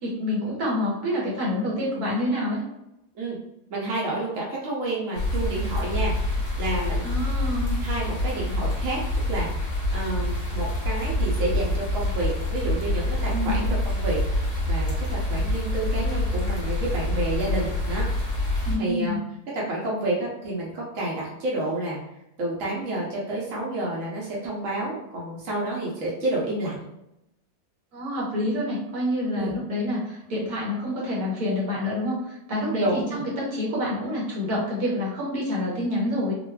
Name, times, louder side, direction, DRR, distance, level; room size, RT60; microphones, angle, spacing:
voice 1, 0.0-2.6 7.0-7.8 13.3-13.7 18.6-19.2 27.9-36.3, left 1 dB, 75° right, -5 dB, 1.5 m, -27 dB
voice 2, 3.7-7.1 7.8-9.0 9.3-18.0 18.8-19.2 19.5-22.0 22.4-26.8 29.3-29.5 32.8-33.2, right 2 dB, 60° right, -4 dB, 1.1 m, -30 dB
sound 1, 5.1-18.8, left 1 dB, 45° left, 1.4 m, -26 dB
3.8 x 2.5 x 2.2 m, 0.85 s
omnidirectional pair, 1.7 m